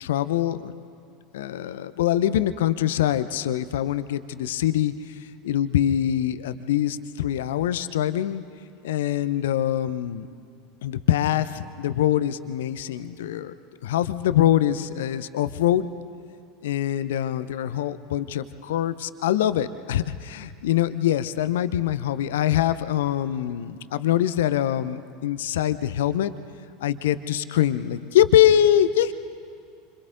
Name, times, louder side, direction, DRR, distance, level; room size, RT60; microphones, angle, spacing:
voice 1, 0.0-0.7 1.3-4.9 5.4-8.4 8.8-10.3 10.8-13.5 13.8-15.8 16.6-26.3 26.8-29.1, left 11 dB, 65° left, 13 dB, 0.7 m, -23 dB
29.0 x 26.0 x 3.9 m, 2.3 s
figure-of-eight pair, 75°, 0 cm